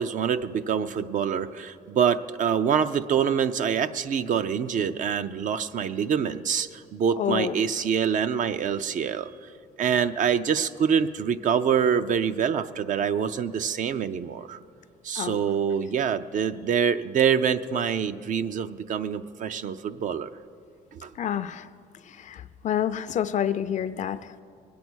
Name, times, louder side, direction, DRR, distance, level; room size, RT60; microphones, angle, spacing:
voice 1, 0.0-9.3 9.8-14.6 15.0-20.3 20.9-21.1, right 7 dB, 50° right, 11 dB, 0.5 m, -25 dB
voice 2, 7.2-7.5 15.2-15.4 21.2-21.6 22.3-24.2, left 9 dB, 45° left, 12 dB, 0.5 m, -28 dB
21.0 x 8.5 x 6.3 m, 2.4 s
cardioid pair, 110°, 17 cm